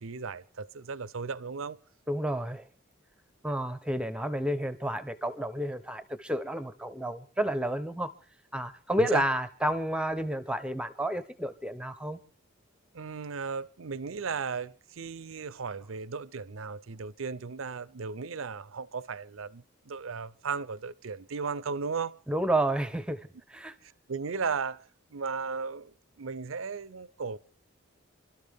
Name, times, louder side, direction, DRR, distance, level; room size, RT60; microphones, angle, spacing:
voice 1, 0.0-1.8 9.0-9.2 12.9-22.2 24.1-24.8 25.1-27.4, right 5 dB, 80° right, 0.6 m, -35 dB
voice 2, 2.1-2.7 3.4-8.1 8.5-12.2 22.3-23.8, right 1 dB, 5° right, 0.7 m, -30 dB
26.5 x 12.5 x 3.6 m
head